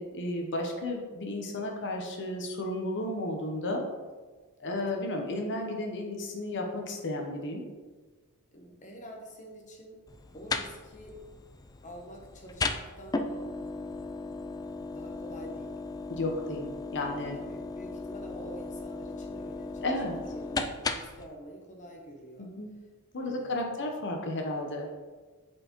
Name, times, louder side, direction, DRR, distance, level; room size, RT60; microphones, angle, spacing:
voice 1, 0.0-3.8 4.6-7.6 16.1-17.4 19.8-20.1 22.4-22.7 23.1-24.9, left 1 dB, 55° left, 1 dB, 0.9 m, -33 dB
voice 2, 8.5-10.0 10.3-11.2 11.8-13.3 14.9-15.8 17.3-22.5 23.2-23.9, equal, 35° left, 0 dB, 0.9 m, -47 dB
sound 1, 10.1-21.3, left 3 dB, 15° left, 0.3 m, -36 dB
8.4 x 4.4 x 3.0 m, 1.4 s
head